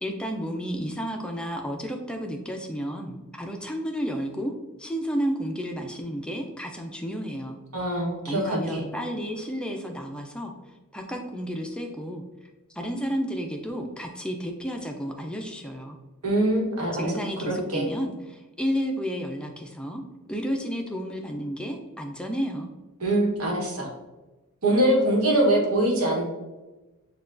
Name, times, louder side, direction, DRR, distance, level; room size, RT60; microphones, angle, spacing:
voice 1, 0.0-4.5 4.8-7.6 8.3-10.5 10.9-12.2 12.7-16.0 16.9-20.0 20.3-22.7, equal, 5° left, 2 dB, 0.3 m, -31 dB
voice 2, 7.7-8.8 16.2-17.1 17.4-17.9 23.0-23.9 24.6-26.2, right 1 dB, 90° right, -2 dB, 1.1 m, -23 dB
6.6 x 2.2 x 2.5 m, 1.1 s
head